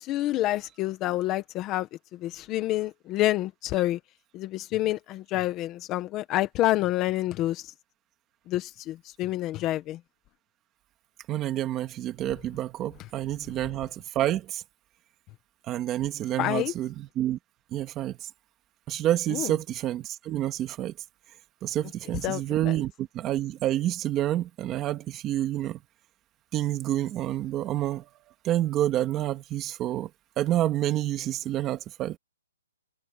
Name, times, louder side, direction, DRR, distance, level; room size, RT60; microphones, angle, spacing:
voice 1, 0.0-4.0 4.3-7.7 8.5-10.0 16.4-16.7 19.3-19.5 22.2-22.7, left 15 dB, 15° left, 1.3 m, -28 dB
voice 2, 11.3-14.6 15.7-17.4 17.7-18.3 18.9-20.9 21.6-25.8 26.5-28.1 28.4-30.1 30.4-32.2, right 13 dB, 15° right, 1.9 m, -28 dB
hypercardioid pair, 175°, 0 cm